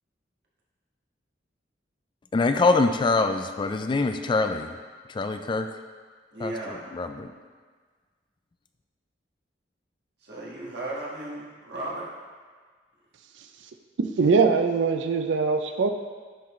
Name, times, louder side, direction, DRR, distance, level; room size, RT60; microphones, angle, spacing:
voice 1, 2.3-4.8 5.1-5.7 6.4-7.3, left 3 dB, 25° left, 7 dB, 0.3 m, -24 dB
voice 2, 6.3-6.9 10.2-12.1, right 2 dB, 65° right, -6 dB, 1.6 m, -35 dB
voice 3, 14.0-15.9, right 4 dB, 85° right, 7 dB, 0.4 m, -22 dB
10.0 x 3.9 x 3.2 m, 1.5 s
head